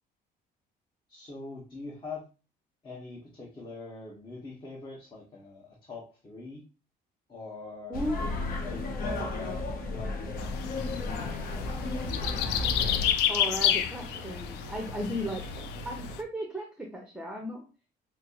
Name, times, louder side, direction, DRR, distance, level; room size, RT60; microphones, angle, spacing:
voice 1, 1.1-2.3 2.8-6.6 7.3-8.0 8.6-10.7 10.9-11.7, left 3 dB, 25° left, -5 dB, 1.1 m, -43 dB
sound 1, 7.9-13.1, left 2 dB, 60° left, 0.8 m, -33 dB
voice 2, 7.9-8.6 13.3-15.4 15.8-17.6, equal, 5° right, 1 dB, 0.7 m, -36 dB
sound 2, 10.4-16.2, left 10 dB, 85° left, 0.4 m, -31 dB
sound 3, 10.8-16.2, right 3 dB, 50° right, 0.5 m, -44 dB
5.8 x 2.0 x 2.9 m, 0.33 s
cardioid pair, 110°, 17 cm